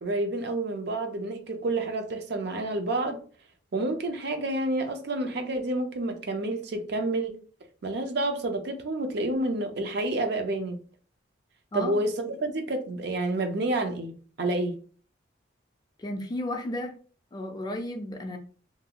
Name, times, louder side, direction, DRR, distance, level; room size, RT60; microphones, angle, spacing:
voice 1, 0.0-3.2 3.7-7.4 7.8-10.8 11.7-14.8, right 2 dB, 55° right, 0.5 m, -29 dB
voice 2, 11.7-12.0 16.0-17.0 17.3-18.4, left 1 dB, 20° left, 0.3 m, -33 dB
2.6 x 2.3 x 2.8 m
head